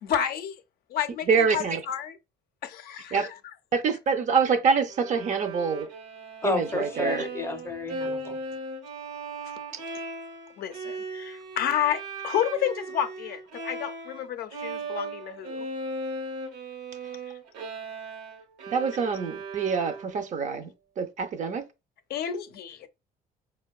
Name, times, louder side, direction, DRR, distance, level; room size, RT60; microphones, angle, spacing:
voice 1, 0.0-0.6 0.9-1.3 1.5-2.1 2.6-3.3 10.6-15.7 22.1-22.9, left 9 dB, 65° left, 0.4 m, -30 dB
voice 2, 1.3-1.9 3.1-3.3 3.7-5.9 6.4-7.3 9.7-9.8 17.0-17.1 18.7-21.7, right 5 dB, 45° right, 0.5 m, -26 dB
Bowed string instrument, 4.9-14.3 14.5-20.3, right 3 dB, 85° right, 0.9 m, -37 dB
voice 3, 6.4-8.4, left 3 dB, 15° left, 0.5 m, -31 dB
4.3 x 2.2 x 2.3 m
cardioid pair, 110°, 17 cm